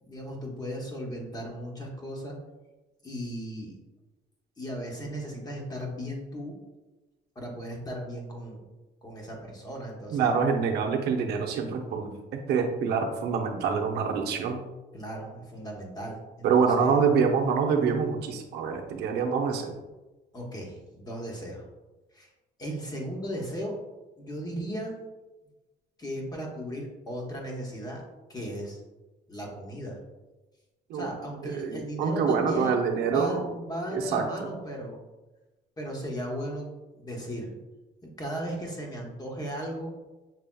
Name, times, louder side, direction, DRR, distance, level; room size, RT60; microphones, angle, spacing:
voice 1, 0.0-2.4 3.0-3.7 4.6-6.6 7.3-8.7 9.0-10.3 14.9-17.0 20.3-21.6 22.1-22.3 22.6-23.8 24.2-25.0 26.0-28.0 28.3-28.8 29.3-30.0 30.9-32.8 33.0-35.0 35.8-37.5 38.0-39.9, equal, 25° left, -1 dB, 1.1 m, -36 dB
voice 2, 10.1-14.6 16.4-19.8 30.9-31.1 31.4-33.4 33.9-34.6, right 6 dB, 75° right, 3 dB, 0.6 m, -26 dB
5.9 x 3.3 x 2.3 m, 1.1 s
cardioid pair, 110°, 17 cm